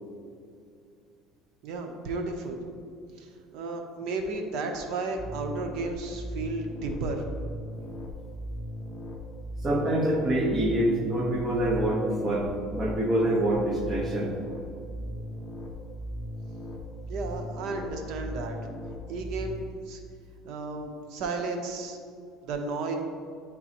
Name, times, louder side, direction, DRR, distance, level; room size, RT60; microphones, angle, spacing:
voice 1, 1.6-2.6 3.2-7.2 17.1-18.6 19.1-20.0 20.4-22.0 22.4-23.0, right 3 dB, 60° right, 3 dB, 0.8 m, -33 dB
sound 1, 5.2-19.6, equal, 20° left, 0.9 m, -38 dB
voice 2, 9.6-14.3, right 1 dB, 20° right, -2 dB, 1.1 m, -26 dB
9.3 x 3.8 x 2.9 m, 2.3 s
cardioid pair, 140°, 0 cm